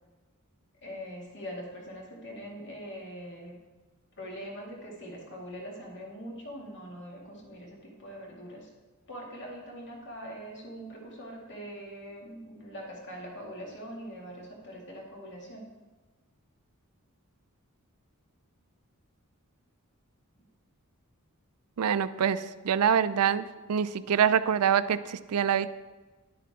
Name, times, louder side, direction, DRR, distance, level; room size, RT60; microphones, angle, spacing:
voice 1, 0.8-3.6 4.2-8.7 9.1-15.6, equal, 55° left, -1 dB, 2.3 m, -42 dB
voice 2, 21.8-25.7, right 8 dB, 85° right, 14 dB, 0.4 m, -25 dB
11.0 x 9.4 x 3.7 m, 1.2 s
head